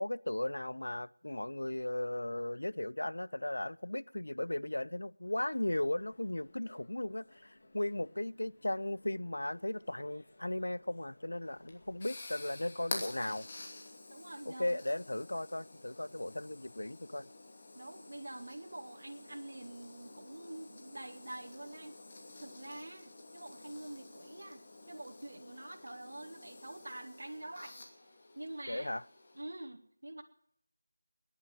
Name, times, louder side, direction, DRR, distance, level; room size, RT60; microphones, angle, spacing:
voice 1, 0.0-13.5 14.5-17.3 28.7-29.0, left 1 dB, 75° left, 0.5 m, -36 dB
sound 1, 5.5-12.0, left 2 dB, 50° left, 2.5 m, -62 dB
sound 2, 11.4-29.4, left 2 dB, 30° left, 2.6 m, -50 dB
voice 2, 14.1-14.8 17.7-22.0 22.4-27.7 28.3-28.9 29.3-30.2, right 1 dB, 60° right, 2.1 m, -46 dB
17.5 x 11.0 x 7.4 m
figure-of-eight pair, 170°, 0 cm